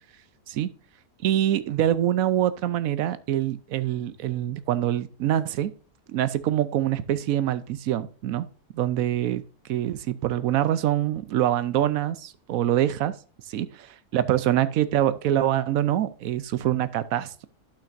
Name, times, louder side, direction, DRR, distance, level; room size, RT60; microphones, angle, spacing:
voice 1, 1.2-5.7 6.1-8.5 8.7-9.4 9.7-13.2 13.5-17.5, right 12 dB, 70° right, 14 dB, 1.0 m, -25 dB
12.0 x 5.8 x 2.6 m, 0.39 s
omnidirectional pair, 1.6 m